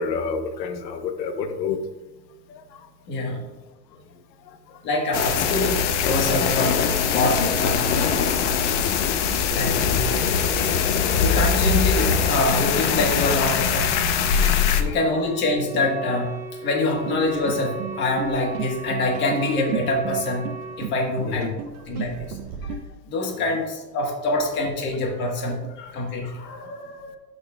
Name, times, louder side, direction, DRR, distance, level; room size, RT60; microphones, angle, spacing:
voice 1, 0.0-1.8 2.5-2.6 14.9-15.0 21.3-21.5 23.4-23.6, left 5 dB, 90° left, 8 dB, 1.0 m, -28 dB
voice 2, 3.1-3.5 4.8-6.8 7.1-8.3 9.5-10.0 11.2-13.9 14.8-16.3 16.6-20.4 20.8-21.5 21.9-22.8 23.1-27.2, left 2 dB, 20° left, 1 dB, 1.2 m, -25 dB
sound 1, 5.1-14.8, left 6 dB, 45° left, 0.7 m, -22 dB
Wind instrument woodwind instrument, 15.1-20.8, right 3 dB, 15° right, 1.1 m, -37 dB
sound 2, 17.1-22.8, right 8 dB, 65° right, 0.9 m, -34 dB
11.0 x 6.6 x 2.2 m, 1.1 s
supercardioid pair, 165°, 49 cm